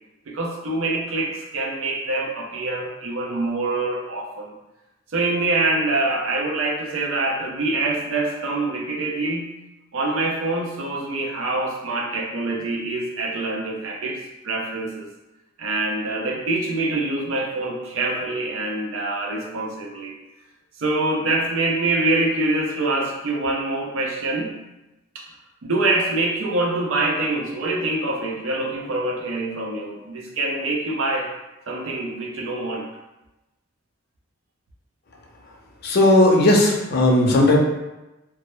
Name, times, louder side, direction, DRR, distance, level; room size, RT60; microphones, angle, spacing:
voice 1, 0.3-4.6 5.1-9.5 9.9-14.2 14.4-15.1 15.6-20.1 20.8-24.6 25.1-25.3 25.6-31.3 31.7-32.9, right 2 dB, 80° right, 0 dB, 0.5 m, -25 dB
voice 2, 35.8-37.6, left 1 dB, 55° left, -1 dB, 0.4 m, -16 dB
2.1 x 2.0 x 2.9 m, 1.0 s
head